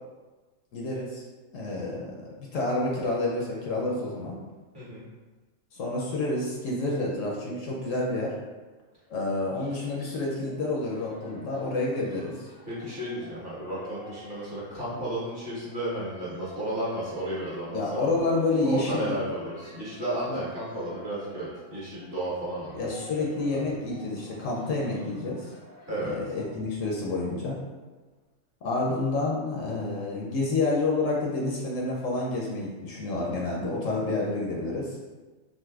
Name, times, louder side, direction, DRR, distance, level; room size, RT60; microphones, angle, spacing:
voice 1, 0.7-1.2 1.5-2.1 2.4-4.4 5.7-8.3 9.1-12.4 17.7-19.1 20.3-20.4 22.7-25.5 26.0-27.6 28.6-35.0, left 2 dB, 70° left, -3 dB, 0.9 m, -29 dB
sound 1, 10.4-27.1, equal, 10° right, 0.6 m, -50 dB
voice 2, 12.6-18.1 18.6-22.9 23.5-23.6 25.9-26.1, right 1 dB, 45° right, -8 dB, 1.2 m, -33 dB
3.9 x 2.5 x 2.3 m, 1.3 s
omnidirectional pair, 1.5 m